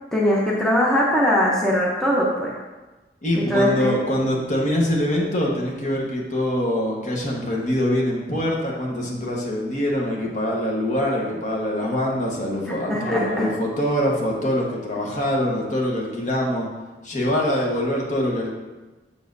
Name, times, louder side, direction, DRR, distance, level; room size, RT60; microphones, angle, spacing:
voice 1, 0.1-2.5 3.5-4.0 12.9-13.5, equal, 5° left, -5 dB, 0.8 m, -20 dB
voice 2, 3.2-16.7 17.0-18.5, left 1 dB, 45° left, -2 dB, 1.3 m, -24 dB
7.3 x 6.7 x 2.7 m, 1.2 s
head